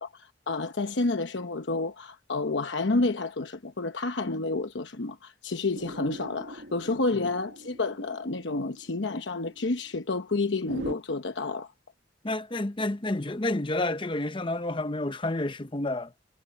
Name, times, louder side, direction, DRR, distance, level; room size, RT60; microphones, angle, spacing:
voice 1, 0.0-11.7, left 3 dB, 80° left, 1.0 m, -30 dB
sound 1, 5.7-10.9, equal, 70° right, 1.9 m, -43 dB
voice 2, 12.2-16.1, left 2 dB, 25° left, 0.8 m, -29 dB
head